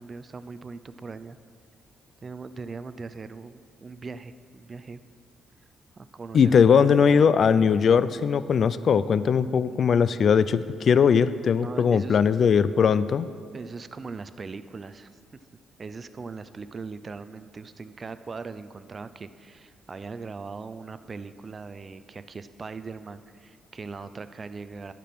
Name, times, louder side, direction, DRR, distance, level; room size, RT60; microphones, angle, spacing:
voice 1, 0.0-1.4 2.2-5.0 5.9-7.0 11.6-12.4 13.5-15.1 15.8-24.9, right 4 dB, 35° right, 12 dB, 0.4 m, -40 dB
voice 2, 6.3-13.3, left 6 dB, 55° left, 15 dB, 0.3 m, -20 dB
10.0 x 6.0 x 6.0 m, 2.1 s
cardioid pair, 90°, 0 cm